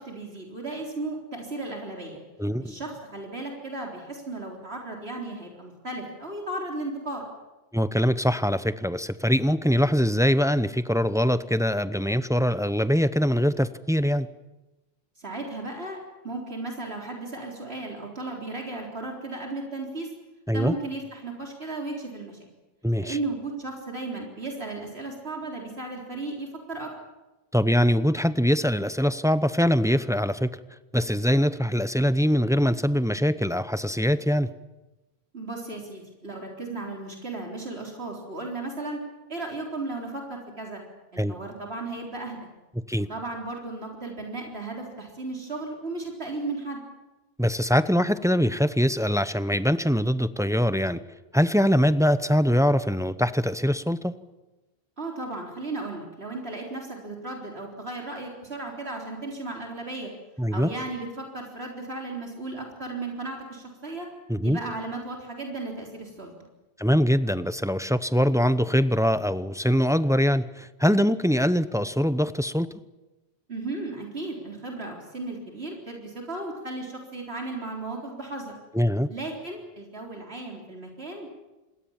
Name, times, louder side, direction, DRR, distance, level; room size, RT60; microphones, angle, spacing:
voice 1, 0.0-2.2 2.6-7.2 15.2-16.0 16.2-20.1 20.5-22.4 23.0-26.9 35.3-39.0 39.3-40.8 41.1-42.5 43.1-46.8 55.0-60.1 60.5-64.1 64.4-66.3 73.5-78.5 79.1-81.4, right 2 dB, 75° right, 0 dB, 4.2 m, -35 dB
voice 2, 2.4-2.7 7.7-14.3 20.5-20.7 22.8-23.2 27.5-30.6 30.9-34.5 41.2-41.3 42.9-43.1 47.4-51.0 51.3-54.1 60.4-60.7 64.3-64.6 66.8-72.7 78.7-79.1, equal, 5° right, 13 dB, 0.7 m, -23 dB
27.5 x 21.0 x 7.3 m, 1.1 s
omnidirectional pair, 1.1 m